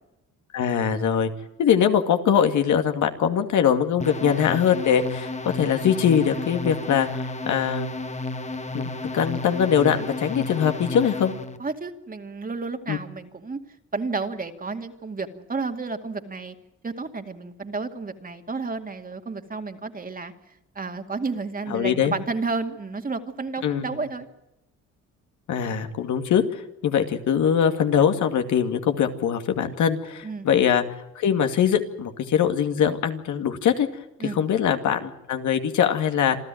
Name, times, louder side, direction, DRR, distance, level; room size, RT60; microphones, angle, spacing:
voice 1, 0.5-1.3 1.6-7.9 8.7-11.3 12.9-13.0 21.7-22.1 23.6-23.8 25.5-30.8 31.2-33.9 34.2-36.4, left 8 dB, 75° left, 6 dB, 2.3 m, -22 dB
sound 1, 4.0-11.6, left 2 dB, 25° left, 1.6 m, -32 dB
voice 2, 11.6-13.6 13.9-16.5 16.8-20.3 20.8-24.3 30.2-30.5 34.2-34.4, right 4 dB, 30° right, 6 dB, 2.4 m, -31 dB
27.0 x 13.5 x 9.2 m, 0.90 s
cardioid pair, 90°, 30 cm